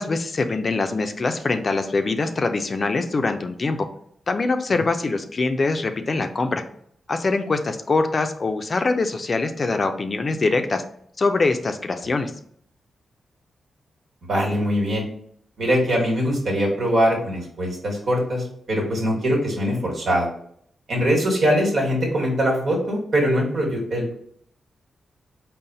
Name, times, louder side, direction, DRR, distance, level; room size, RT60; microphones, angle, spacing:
voice 1, 0.0-3.9 4.3-6.6 7.1-10.8 11.2-12.3, left 3 dB, 50° left, 7 dB, 0.4 m, -23 dB
voice 2, 14.3-15.1 15.6-20.3 20.9-24.1, equal, 70° right, -2 dB, 1.4 m, -22 dB
3.9 x 2.0 x 4.0 m, 0.65 s
supercardioid pair, 50°, 0 cm